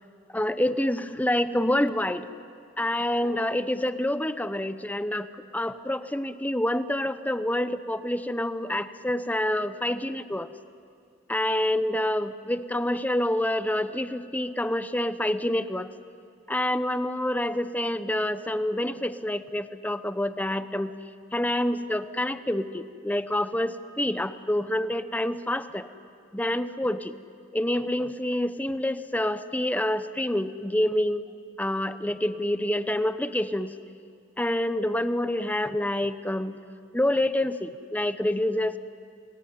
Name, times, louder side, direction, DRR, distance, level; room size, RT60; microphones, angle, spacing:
voice 1, 0.3-2.3 2.8-5.3 5.5-10.5 11.3-15.9 16.5-21.0 21.3-25.9 26.3-27.1 27.5-31.2 31.6-33.7 34.4-36.6 36.9-38.8, left 1 dB, 10° left, 12 dB, 0.8 m, -27 dB
28.5 x 20.0 x 9.6 m, 2.4 s
head